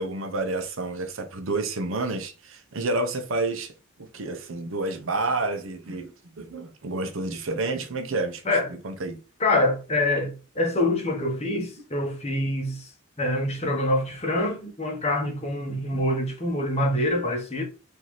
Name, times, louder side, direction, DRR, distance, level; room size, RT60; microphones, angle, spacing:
voice 1, 0.0-3.7 4.0-8.4 8.7-9.2 15.7-16.0, right 2 dB, 65° right, 0.6 m, -30 dB
voice 2, 9.4-12.9 13.2-17.6, left 1 dB, 30° left, 0.9 m, -25 dB
4.0 x 2.7 x 3.0 m
head